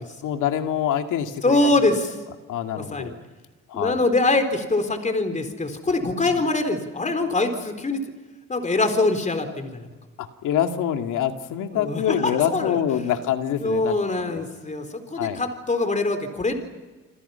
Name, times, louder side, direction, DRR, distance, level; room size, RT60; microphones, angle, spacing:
voice 1, 0.2-1.7 2.5-3.2 3.7-4.0 6.0-6.3 10.2-14.4 15.2-15.4, left 10 dB, 85° left, 5 dB, 2.4 m, -26 dB
voice 2, 1.4-2.2 2.7-3.1 3.7-8.0 8.5-9.9 11.7-12.8 13.6-16.5, left 2 dB, 25° left, 6 dB, 4.1 m, -23 dB
29.0 x 27.0 x 5.8 m, 1.2 s
cardioid pair, 90°, 30 cm